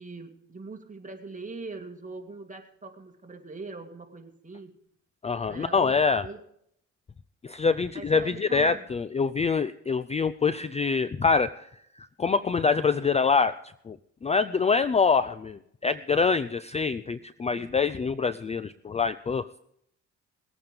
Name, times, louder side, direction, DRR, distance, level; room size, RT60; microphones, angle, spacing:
voice 1, 0.0-4.7 5.5-6.4 7.9-8.8 14.5-14.6 17.5-17.8, right 3 dB, 25° right, 3 dB, 2.3 m, -42 dB
voice 2, 5.2-6.3 7.4-11.5 12.0-13.5 13.9-14.0 14.2-19.5, left 5 dB, 20° left, 15 dB, 0.4 m, -25 dB
19.5 x 8.7 x 5.3 m, 0.73 s
cardioid pair, 90°, 30 cm